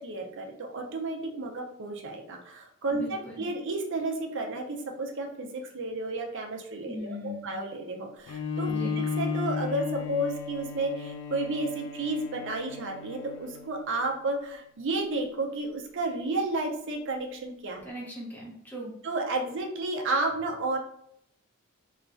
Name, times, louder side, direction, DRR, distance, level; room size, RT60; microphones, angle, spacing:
voice 1, 0.0-8.7 9.0-17.8 19.0-20.8, right 2 dB, 60° right, 2 dB, 0.5 m, -32 dB
voice 2, 2.9-3.4 6.9-7.5 8.6-9.0 17.8-18.9, left 1 dB, 10° left, -5 dB, 0.7 m, -39 dB
Bowed string instrument, 8.3-13.9, left 5 dB, 80° left, 0.3 m, -34 dB
2.9 x 2.3 x 2.5 m, 0.70 s
head